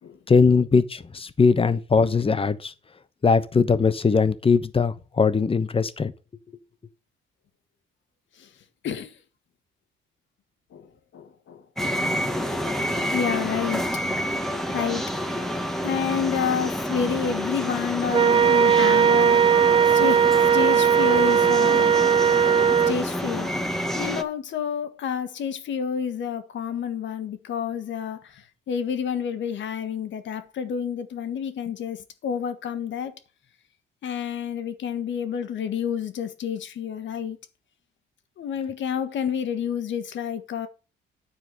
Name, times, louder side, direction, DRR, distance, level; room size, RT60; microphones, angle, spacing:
voice 1, 0.3-2.7 3.2-6.1, left 5 dB, 30° left, 1.1 m, -20 dB
voice 2, 8.8-9.1 10.7-10.9 11.1-11.6 13.1-13.8 14.7-15.0 15.8-21.9 22.9-23.5 23.9-33.1 34.0-37.4 38.4-40.7, left 7 dB, 70° left, 1.7 m, -29 dB
sound 1, 11.8-24.2, equal, ahead, 1.6 m, -28 dB
Wind instrument woodwind instrument, 18.1-23.0, right 8 dB, 25° right, 0.4 m, -18 dB
10.0 x 4.7 x 7.6 m
cardioid pair, 90°, 20 cm